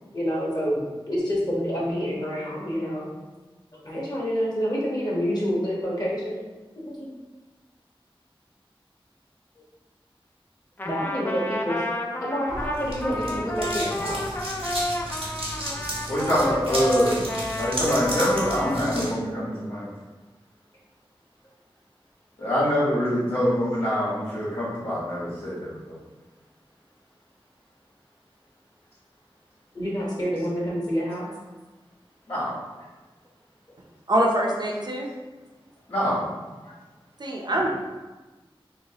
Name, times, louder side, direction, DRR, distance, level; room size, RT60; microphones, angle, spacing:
voice 1, 0.0-3.1 3.8-6.3 6.8-7.1 10.8-11.8 12.2-14.3 29.7-31.3 36.6-36.7 37.5-37.7, equal, 45° left, -6 dB, 1.1 m, -28 dB
Trumpet, 10.8-18.9, left 1 dB, 20° left, 0.4 m, -31 dB
sound 1, 12.5-19.1, right 1 dB, 90° right, 1.1 m, -33 dB
voice 2, 16.1-17.2 17.5-19.9 22.4-26.0 32.3-32.5 35.9-36.2, equal, 80° left, -11 dB, 1.3 m, -24 dB
voice 3, 34.1-35.1 37.2-37.7, right 1 dB, 50° right, -1 dB, 0.6 m, -24 dB
3.1 x 3.0 x 2.8 m, 1.2 s
wide cardioid pair, 55°, 10 cm